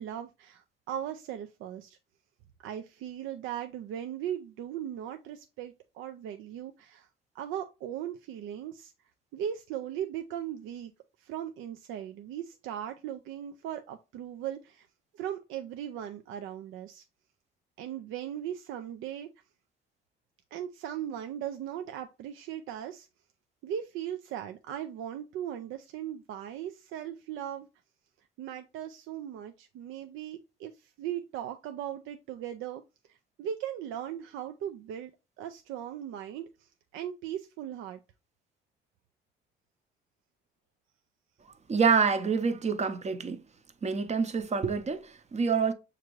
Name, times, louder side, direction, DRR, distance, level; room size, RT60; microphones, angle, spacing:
voice 1, 0.0-2.0 2.6-7.1 7.4-8.9 9.3-10.9 11.2-14.9 15.1-17.0 17.8-19.3 20.5-23.1 23.6-27.7 28.4-30.7 31.0-32.8 33.4-35.1 35.4-36.5 36.9-38.0, right 10 dB, 90° right, 0.4 m, -38 dB
voice 2, 41.7-43.4 43.8-45.7, right 5 dB, 35° right, 0.6 m, -27 dB
6.4 x 2.6 x 3.0 m
cardioid pair, 90°, 20 cm